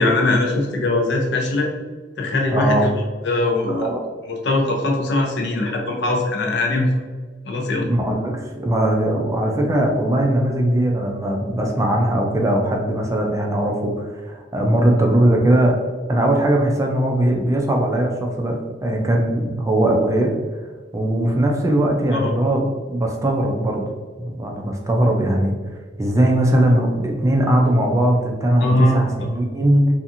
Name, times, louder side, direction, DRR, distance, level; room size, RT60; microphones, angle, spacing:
voice 1, 0.0-1.7 2.2-2.9 3.2-3.9 4.3-6.9 7.4-7.9 22.1-22.3 28.6-29.1, left 2 dB, 65° left, 0 dB, 0.5 m, -21 dB
voice 2, 2.5-2.9 3.7-4.0 7.9-15.8 16.1-20.3 20.9-22.6 22.9-25.5 26.0-29.9, right 1 dB, 15° right, 1 dB, 0.3 m, -19 dB
2.7 x 2.5 x 2.5 m, 1.4 s
head